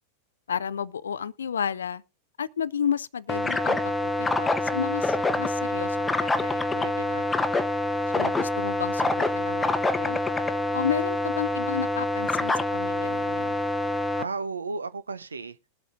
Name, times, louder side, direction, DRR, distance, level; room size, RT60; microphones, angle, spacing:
voice 1, 0.5-2.0 2.4-6.6 8.1-10.2 10.7-13.6, left 7 dB, 70° left, 0.4 m, -32 dB
sound 1, 3.3-14.2, left 2 dB, 10° left, 0.7 m, -26 dB
voice 2, 6.7-7.3 14.1-15.7, right 4 dB, 75° right, 0.6 m, -34 dB
21.0 x 7.9 x 2.4 m
figure-of-eight pair, 90°, 0 cm